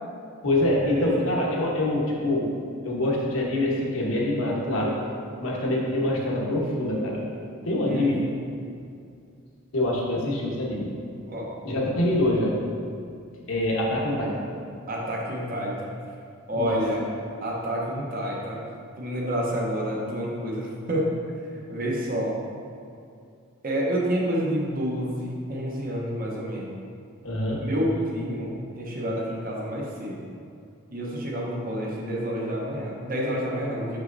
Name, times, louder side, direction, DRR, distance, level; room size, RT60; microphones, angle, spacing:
voice 1, 0.4-2.5 2.8-5.0 5.4-7.2 7.6-8.3 9.7-10.9 11.6-12.6 13.5-14.4 16.5-16.9 27.2-27.7, left 1 dB, 70° left, -3 dB, 1.2 m, -25 dB
voice 2, 7.9-8.2 11.3-11.5 14.9-15.9 16.5-17.0 17.4-18.6 19.0-21.1 21.7-22.4 23.6-26.8 27.6-30.2 30.9-34.0, equal, 40° right, -3 dB, 0.9 m, -29 dB
6.3 x 6.2 x 2.6 m, 2.4 s
head